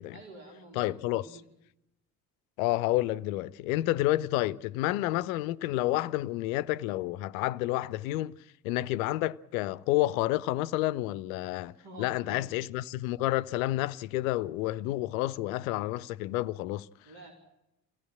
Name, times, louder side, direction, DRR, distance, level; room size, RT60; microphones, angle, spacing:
voice 1, 0.1-1.5 11.7-12.5 17.0-17.3, right 2 dB, 55° right, 4.4 m, -49 dB
voice 2, 0.7-1.3 2.6-8.4 8.6-11.7 12.0-16.9, left 16 dB, 60° left, 0.7 m, -30 dB
24.5 x 17.0 x 7.4 m
figure-of-eight pair, 55°, 46 cm